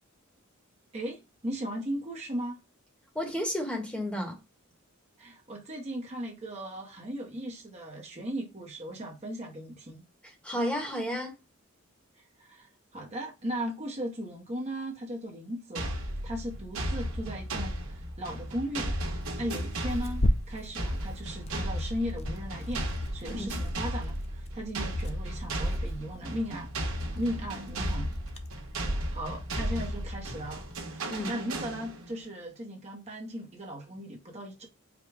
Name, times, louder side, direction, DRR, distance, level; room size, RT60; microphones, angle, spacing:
voice 1, 0.9-2.6 5.2-10.0 12.2-15.9 16.2-19.0 19.4-22.9 23.1-28.2 29.1-34.7, equal, 30° right, 0.9 m, -37 dB
voice 2, 3.1-4.4 10.4-11.3 23.3-23.5 31.1-31.3, equal, 5° left, 1.1 m, -32 dB
sound 1, 15.7-32.2, right 1 dB, 80° right, 1.4 m, -35 dB
Tearing, 19.1-30.8, left 1 dB, 30° left, 0.5 m, -38 dB
5.0 x 2.3 x 4.7 m
head